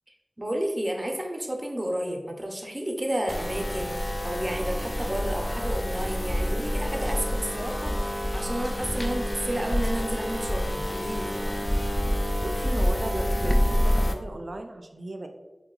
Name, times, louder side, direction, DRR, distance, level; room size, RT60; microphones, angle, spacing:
voice 1, 0.4-11.5, right 1 dB, 25° right, 1 dB, 0.6 m, -31 dB
sound 1, 3.3-14.1, equal, 25° left, 0.3 m, -27 dB
voice 2, 12.4-15.3, right 2 dB, 65° right, 5 dB, 0.4 m, -36 dB
2.7 x 2.2 x 3.8 m, 1.1 s
wide cardioid pair, 50°, 0 cm